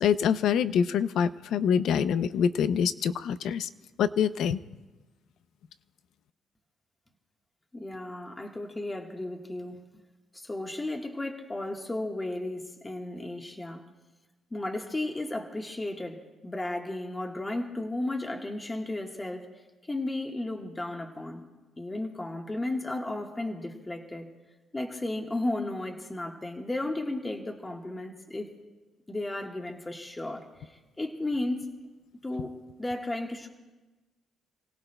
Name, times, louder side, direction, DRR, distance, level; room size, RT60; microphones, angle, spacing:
voice 1, 0.0-3.7 4.0-4.6, left 8 dB, 75° left, 13 dB, 0.5 m, -25 dB
voice 2, 7.7-9.9 10.3-13.9 14.5-19.5 19.8-21.4 21.8-24.3 24.7-28.5 29.1-31.6 32.2-33.5, left 2 dB, 15° left, 1 dB, 1.4 m, -34 dB
29.5 x 17.0 x 2.2 m, 1.2 s
cardioid pair, 90°, 0 cm